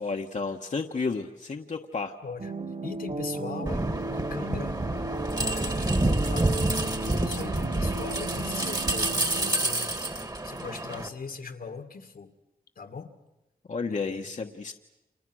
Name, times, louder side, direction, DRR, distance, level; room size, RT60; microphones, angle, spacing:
voice 1, 0.0-2.1 13.7-14.7, left 4 dB, 50° left, 2 dB, 1.3 m, -32 dB
sound 1, 2.4-9.5, right 2 dB, 50° right, 3.0 m, -35 dB
voice 2, 2.8-4.8 5.4-9.9 10.4-12.3 12.8-13.1 13.9-14.3, left 5 dB, 75° left, 7 dB, 2.1 m, -40 dB
hand along chain fence, 3.7-11.1, right 2 dB, 25° right, 1.8 m, -28 dB
29.5 x 28.0 x 6.3 m, 0.98 s
wide cardioid pair, 75°, 16 cm